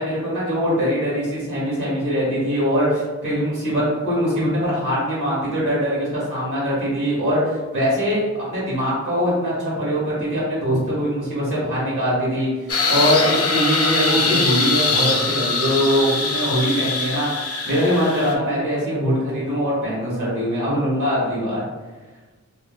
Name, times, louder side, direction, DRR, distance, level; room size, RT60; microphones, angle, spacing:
voice 1, 0.0-17.3 17.6-21.6, equal, 85° right, -6 dB, 1.3 m, -22 dB
sound 1, 12.7-18.3, left 4 dB, 55° left, 0.4 m, -22 dB
2.6 x 2.2 x 3.5 m, 1.3 s
wide cardioid pair, 105°, 30 cm